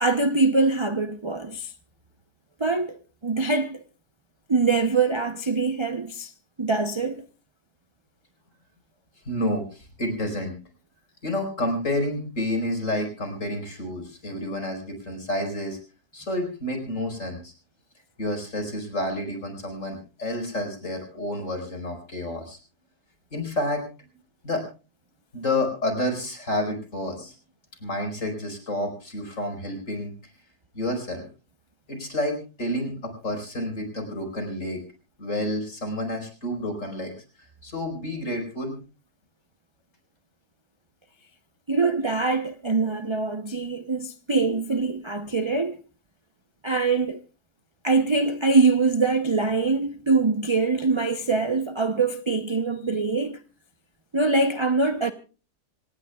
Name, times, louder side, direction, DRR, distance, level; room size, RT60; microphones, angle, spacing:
voice 1, 0.0-1.7 2.6-3.8 4.5-6.3 6.6-7.2 41.7-45.8 46.6-47.2 47.8-53.4 54.1-55.1, right 3 dB, 30° right, 0.5 m, -23 dB
voice 2, 9.3-10.5 11.2-15.8 16.1-17.5 18.2-22.6 23.3-23.9 24.4-24.7 25.3-27.3 27.8-30.1 30.7-31.2 31.9-34.8 35.2-37.1 37.4-38.8, left 1 dB, 50° left, 5.2 m, -29 dB
26.0 x 18.0 x 2.3 m
omnidirectional pair, 1.7 m